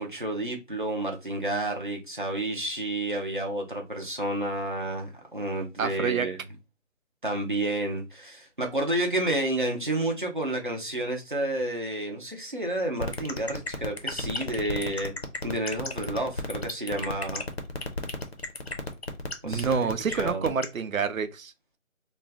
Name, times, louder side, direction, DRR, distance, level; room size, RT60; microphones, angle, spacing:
voice 1, 0.0-6.4 7.2-15.1 15.4-17.4 19.4-19.9 20.2-20.5, right 1 dB, 40° right, 0.5 m, -30 dB
voice 2, 5.8-6.3 19.4-21.8, right 6 dB, 85° right, 0.7 m, -28 dB
sound 1, 13.0-20.6, left 2 dB, 50° left, 0.6 m, -32 dB
2.5 x 2.1 x 3.3 m
figure-of-eight pair, 180°, 40 cm